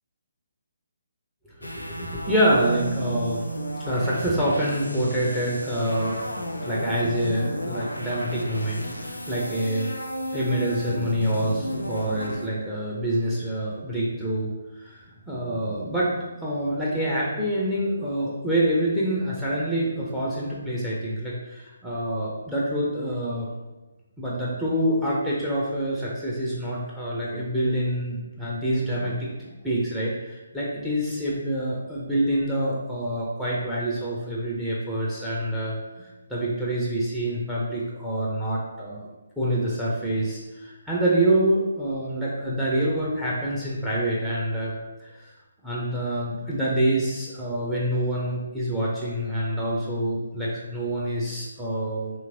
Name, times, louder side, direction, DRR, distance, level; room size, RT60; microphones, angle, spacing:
sound 1, 1.6-12.5, equal, 85° left, 0.3 m, -33 dB
voice 1, 1.6-3.6 3.8-9.9 10.3-23.5 24.2-39.1 39.4-44.7 45.0-45.3 45.6-52.1, right 1 dB, 5° right, -6 dB, 0.5 m, -26 dB
3.0 x 2.7 x 2.5 m, 1.1 s
figure-of-eight pair, 140°, 0 cm